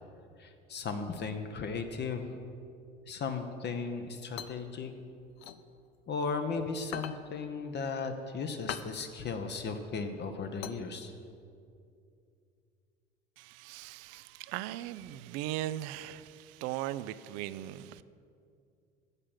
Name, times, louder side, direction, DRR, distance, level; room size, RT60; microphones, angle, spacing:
voice 1, 0.4-2.4 3.1-4.9 6.1-11.1, left 4 dB, 35° left, 7 dB, 0.8 m, -36 dB
sound 1, 4.0-6.4 6.8-11.4, left 11 dB, 75° left, 0.5 m, -43 dB
voice 2, 13.4-18.0, right 14 dB, 55° right, 16 dB, 0.4 m, -38 dB
7.3 x 6.7 x 7.3 m, 2.5 s
hypercardioid pair, 70°, 31 cm